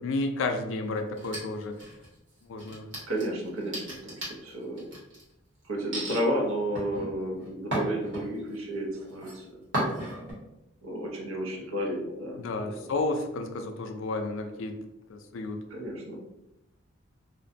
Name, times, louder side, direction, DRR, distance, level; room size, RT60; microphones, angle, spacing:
voice 1, 0.0-1.8 2.4-2.9 12.4-14.7 15.1-15.6, left 2 dB, 65° left, 5 dB, 0.3 m, -31 dB
sound 1, 1.2-2.1 2.6-5.2 5.9-6.2 6.8-8.6 8.9-9.3 9.7-10.3, right 1 dB, 60° right, 1.0 m, -34 dB
voice 2, 3.1-4.9 5.6-9.6 10.8-12.4 12.6-12.8 15.7-16.2, equal, 75° right, -1 dB, 0.6 m, -32 dB
2.5 x 2.1 x 2.5 m, 0.91 s
head